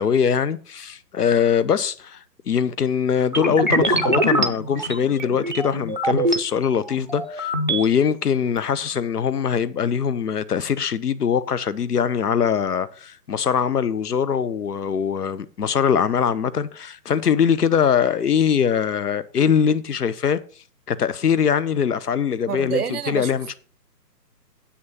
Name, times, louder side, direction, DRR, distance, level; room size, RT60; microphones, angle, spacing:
voice 1, 0.0-2.2 2.5-20.4 20.9-23.5, left 7 dB, 65° left, 1.0 m, -22 dB
sound 1, 3.3-6.4 6.9-7.9, right 1 dB, 30° right, 0.5 m, -23 dB
voice 2, 22.5-23.3, right 7 dB, 65° right, 0.7 m, -27 dB
8.4 x 6.3 x 5.5 m
hypercardioid pair, 170°, 50 cm